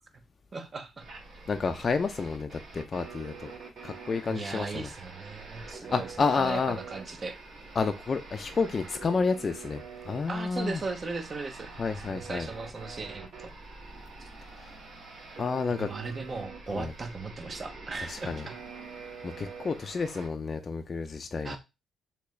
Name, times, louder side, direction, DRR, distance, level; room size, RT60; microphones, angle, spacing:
voice 1, 0.5-1.1 4.3-7.4 10.3-11.7 12.0-13.5 15.7-18.6 21.4-21.6, right 3 dB, 35° right, 0.8 m, -37 dB
sound 1, 1.0-20.3, right 4 dB, 60° right, 1.5 m, -45 dB
voice 2, 1.5-3.5 3.8-4.9 5.7-6.8 7.8-10.8 11.8-12.5 14.6-14.7 15.4-15.9 16.7-16.9 18.0-18.4 19.2-21.6, left 4 dB, 40° left, 0.4 m, -30 dB
3.4 x 2.9 x 3.1 m
cardioid pair, 90°, 0 cm